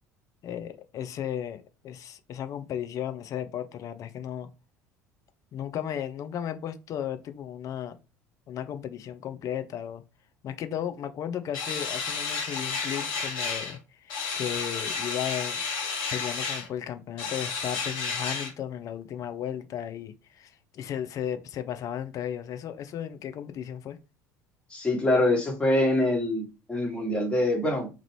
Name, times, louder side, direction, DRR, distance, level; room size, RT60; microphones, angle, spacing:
voice 1, 0.4-4.5 5.5-8.0 8.5-10.0 10.4-15.6 16.1-24.0, left 9 dB, 40° left, 0.4 m, -35 dB
sound 1, 11.5-13.8 14.1-16.7 17.2-18.5, left 5 dB, 55° left, 1.2 m, -31 dB
voice 2, 24.7-27.9, left 1 dB, 10° left, 1.4 m, -25 dB
3.0 x 2.5 x 3.1 m
figure-of-eight pair, 65°, 9 cm